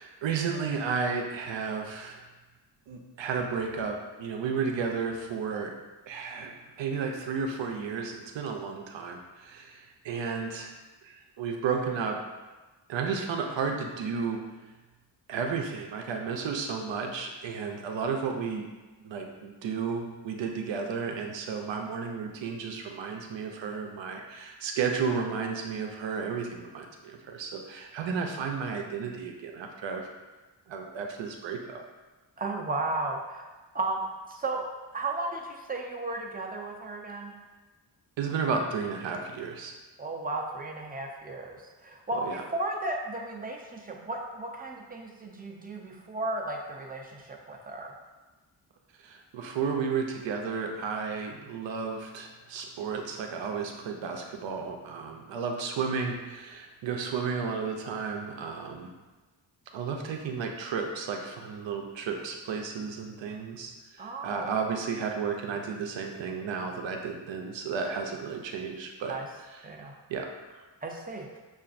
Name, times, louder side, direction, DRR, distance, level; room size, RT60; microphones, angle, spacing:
voice 1, 0.0-2.2 2.9-5.8 6.1-10.7 11.0-12.2 12.9-14.4 15.3-18.7 19.0-30.0 30.7-31.8 38.2-39.7 42.2-42.4 49.0-58.9 59.7-69.2 69.5-69.6 70.1-70.3 70.5-70.6, right 5 dB, 85° right, 2 dB, 0.6 m, -33 dB
voice 2, 32.4-33.4 33.7-34.6 34.9-37.3 40.0-47.9 64.0-64.5 69.1-69.3 69.6-70.0 70.8-71.3, right 2 dB, 20° right, 0 dB, 0.5 m, -34 dB
5.7 x 2.5 x 2.5 m, 1.2 s
wide cardioid pair, 110°, 44 cm